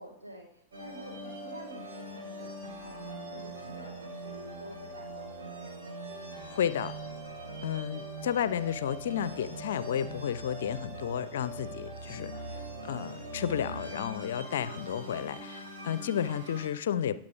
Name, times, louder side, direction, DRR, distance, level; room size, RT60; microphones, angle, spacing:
voice 1, 0.0-2.5 2.8-6.0 7.4-7.8, right 1 dB, 80° right, -2 dB, 4.2 m, -49 dB
sound 1, 0.7-16.7, right 1 dB, 60° right, 4.2 m, -42 dB
voice 2, 6.5-6.9 7.6-17.2, left 9 dB, 60° left, 16 dB, 0.5 m, -32 dB
20.0 x 7.3 x 2.6 m, 0.64 s
figure-of-eight pair, 90°, 0 cm